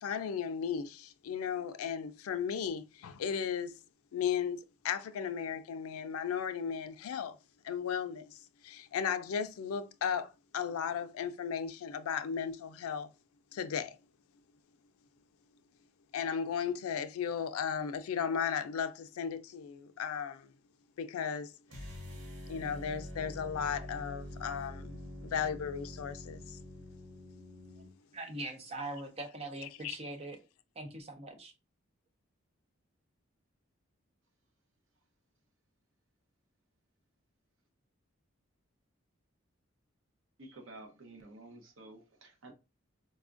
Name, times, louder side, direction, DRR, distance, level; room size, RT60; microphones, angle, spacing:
voice 1, 0.0-3.7 4.1-7.4 7.6-13.1 13.5-14.0 16.1-20.5 21.0-21.5 22.5-26.6 29.8-30.0, left 7 dB, 90° left, 0.4 m, -35 dB
sound 1, 21.7-27.9, left 1 dB, 90° right, 1.3 m, -46 dB
voice 2, 28.1-30.4 30.8-31.5, right 2 dB, 30° right, 0.5 m, -41 dB
voice 3, 40.4-42.5, right 2 dB, 65° right, 0.8 m, -51 dB
4.1 x 2.3 x 2.4 m
head